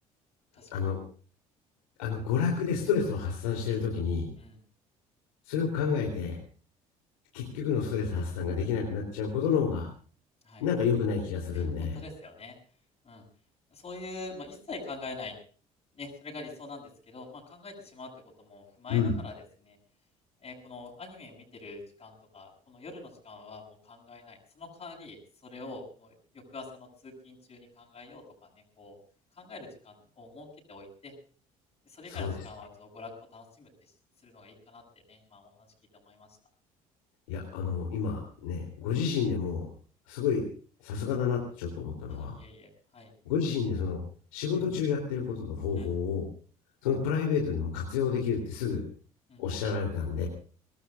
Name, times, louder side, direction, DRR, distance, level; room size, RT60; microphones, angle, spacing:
voice 1, 0.7-1.0 2.0-4.3 5.5-6.4 7.3-9.9 10.6-12.0 18.9-19.2 32.1-32.3 37.3-39.6 40.1-40.5 40.8-42.4 43.3-44.0 44.3-46.2 46.8-48.8 49.4-50.3, left 6 dB, 75° left, 1 dB, 3.4 m, -29 dB
voice 2, 11.5-12.6 13.0-13.2 13.7-15.4 15.9-19.8 20.4-28.5 28.8-29.0 29.4-31.1 31.8-33.7 34.2-34.8 35.1-35.7 35.9-36.3 42.1-43.1 45.8-45.9 49.3-49.4, left 3 dB, 35° left, -4 dB, 7.4 m, -45 dB
24.5 x 19.5 x 2.5 m, 0.41 s
figure-of-eight pair, 55°, 18 cm